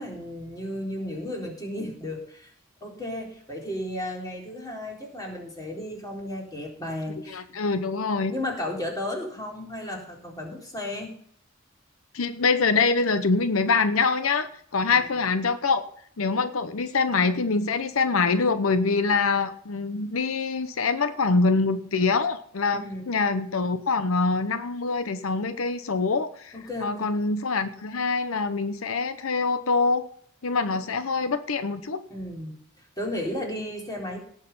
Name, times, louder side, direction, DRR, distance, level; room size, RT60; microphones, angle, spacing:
voice 1, 0.0-2.5 2.8-7.4 8.3-11.1 14.9-15.1 22.7-23.0 26.5-27.1 30.7-30.8 32.1-32.6 33.0-34.2, left 1 dB, 20° left, -1 dB, 3.8 m, -34 dB
voice 2, 7.3-8.3 12.1-15.8 16.2-26.5 26.8-30.0 30.4-32.0, left 4 dB, 85° left, 11 dB, 0.8 m, -24 dB
17.5 x 6.5 x 5.4 m, 0.63 s
head